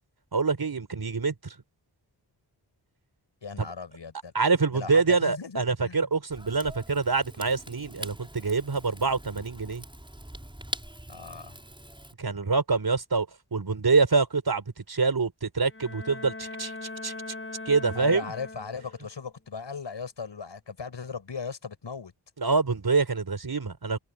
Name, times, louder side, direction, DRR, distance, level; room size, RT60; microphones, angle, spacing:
voice 1, 0.3-1.5 3.6-3.7 4.3-9.8 12.2-16.7 17.0-17.1 17.7-18.3 22.4-24.0, right 4 dB, 55° right, 5.6 m, -26 dB
voice 2, 3.4-4.3 4.7-6.1 11.1-11.6 18.0-22.1, left 5 dB, 75° left, 7.1 m, -38 dB
Rain / Fire, 6.3-12.1, right 1 dB, 10° right, 7.7 m, -43 dB
Bowed string instrument, 15.6-19.0, left 2 dB, 30° left, 3.6 m, -40 dB
open air
wide cardioid pair, 85°, 43 cm